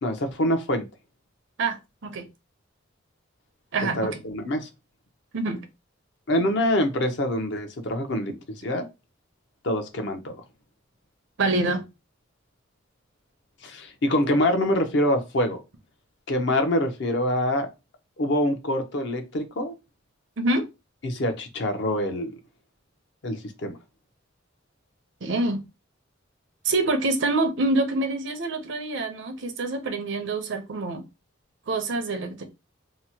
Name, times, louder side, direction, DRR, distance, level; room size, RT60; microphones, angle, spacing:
voice 1, 0.0-0.9 4.0-4.7 6.3-8.3 8.6-8.9 9.6-10.3 13.6-15.6 16.3-17.7 18.2-19.7 21.0-22.3 23.2-23.8, left 1 dB, 60° left, 0.6 m, -25 dB
voice 2, 1.6-2.3 3.7-4.2 5.3-5.6 11.4-11.8 20.4-20.6 25.2-25.6 26.6-31.0 31.7-32.4, right 2 dB, 65° right, 0.6 m, -26 dB
2.8 x 2.1 x 2.7 m
head